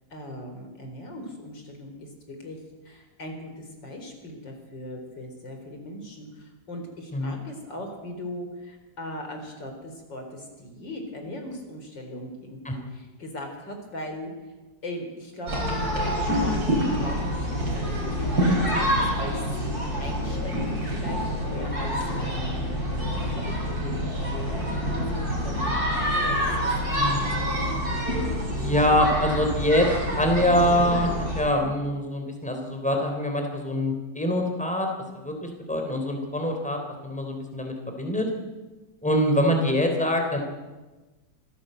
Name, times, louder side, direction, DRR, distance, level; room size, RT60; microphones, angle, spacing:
voice 1, 0.1-2.6 2.8-14.3 14.8-19.4 19.7-24.5 24.9-26.7, left 1 dB, 80° left, 4 dB, 4.8 m, -39 dB
sound 1, 15.5-31.4, equal, 55° right, 6.4 m, -27 dB
voice 2, 27.0-27.4 28.5-29.9 30.2-34.9 35.1-38.3 39.0-40.4, left 1 dB, 5° left, 3 dB, 3.7 m, -24 dB
25.0 x 17.0 x 8.0 m, 1.2 s
omnidirectional pair, 1.9 m